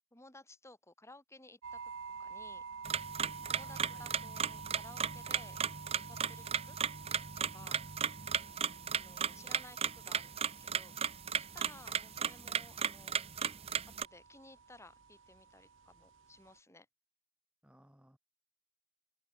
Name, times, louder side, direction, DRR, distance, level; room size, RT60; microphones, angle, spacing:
voice 1, 0.1-1.8 2.2-2.6 3.5-5.6 6.1-6.8 7.5-7.8 8.9-10.9 11.3-13.2 14.0-16.9, left 2 dB, 15° left, 5.4 m, -57 dB
sound 1, 1.6-16.6, right 5 dB, 65° right, 0.9 m, -50 dB
sound 2, 2.8-14.1, right 7 dB, 30° right, 0.6 m, -36 dB
voice 2, 3.4-4.2 7.6-7.9 17.6-18.2, equal, 5° right, 1.2 m, -60 dB
head